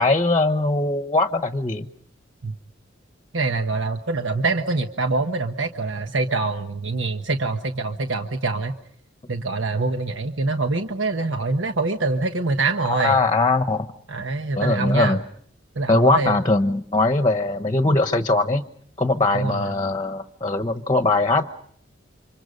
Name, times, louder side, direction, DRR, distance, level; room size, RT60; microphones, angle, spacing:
voice 1, 0.0-1.9 12.8-13.9 14.6-15.2 15.9-18.6 19.0-21.5, left 2 dB, 25° left, 9 dB, 1.0 m, -21 dB
voice 2, 3.3-8.8 9.3-13.2 14.1-15.2 15.7-16.4 19.3-19.7, right 3 dB, 90° right, 6 dB, 1.2 m, -24 dB
29.5 x 26.0 x 5.3 m, 0.65 s
head